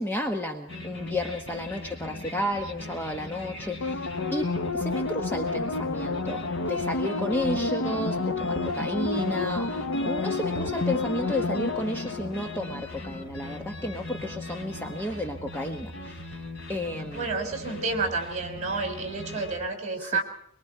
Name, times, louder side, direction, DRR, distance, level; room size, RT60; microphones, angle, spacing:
voice 1, 0.0-9.7 10.0-16.2 16.7-17.3 20.0-20.2, left 1 dB, 10° left, 2 dB, 1.3 m, -32 dB
sound 1, 0.7-19.6, left 2 dB, 60° left, 4.6 m, -40 dB
sound 2, 3.8-13.2 13.5-13.6, left 3 dB, 80° left, 0.9 m, -30 dB
voice 2, 17.1-20.2, right 3 dB, 30° right, 3 dB, 6.0 m, -30 dB
24.0 x 23.5 x 4.6 m, 0.68 s
head